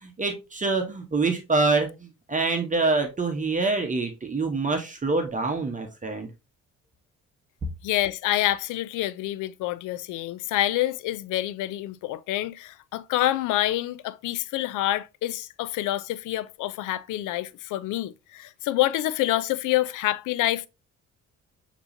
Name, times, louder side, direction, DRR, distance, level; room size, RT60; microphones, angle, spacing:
voice 1, 0.0-6.3, right 3 dB, 25° right, 1.0 m, -26 dB
voice 2, 7.8-20.7, left 15 dB, 90° left, 0.5 m, -27 dB
6.7 x 3.0 x 2.6 m
cardioid pair, 90°, 30 cm